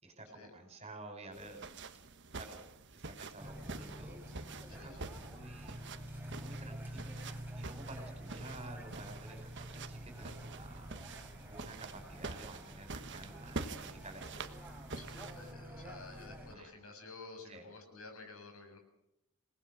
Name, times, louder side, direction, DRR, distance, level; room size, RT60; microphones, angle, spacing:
voice 1, 0.0-1.6 2.3-2.6 2.9-4.2 4.7-5.8 6.3-7.2 7.6-14.6 16.5-16.7 17.5-17.7, right 2 dB, 30° right, 5 dB, 5.1 m, -51 dB
sound 1, 1.3-15.5, right 3 dB, 55° right, 1.4 m, -47 dB
sound 2, 3.4-16.5, right 1 dB, 10° right, 4.3 m, -48 dB
voice 2, 4.7-5.0 13.8-13.9 14.9-18.8, left 3 dB, 70° left, 4 dB, 7.4 m, -52 dB
28.5 x 19.0 x 6.4 m, 0.81 s
head